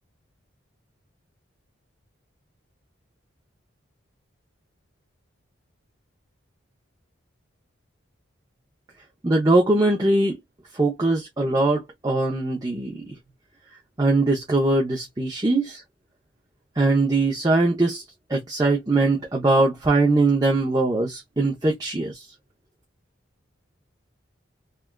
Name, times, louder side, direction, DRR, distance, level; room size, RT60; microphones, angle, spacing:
voice 1, 9.2-10.4 10.7-13.1 14.0-15.8 16.8-18.0 18.3-22.2, right 2 dB, 20° right, 0.6 m, -21 dB
3.4 x 2.3 x 2.2 m
head